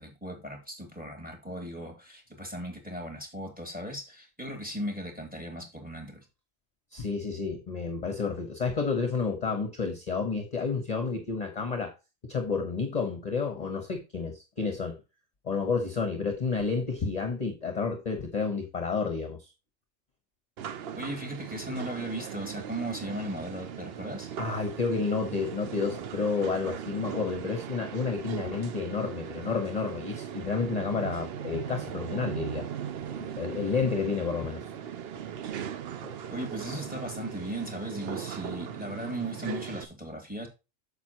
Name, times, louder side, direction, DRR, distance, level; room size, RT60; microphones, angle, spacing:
voice 1, 0.0-6.2 21.0-24.3 36.3-40.5, right 1 dB, 5° right, 2.7 m, -37 dB
voice 2, 6.9-11.9 12.2-15.0 15.4-19.5 24.4-32.7 33.1-34.7 36.0-36.1, left 4 dB, 35° left, 1.1 m, -30 dB
sound 1, 20.6-39.8, right 9 dB, 55° right, 0.8 m, -38 dB
9.3 x 7.0 x 2.9 m
omnidirectional pair, 1.3 m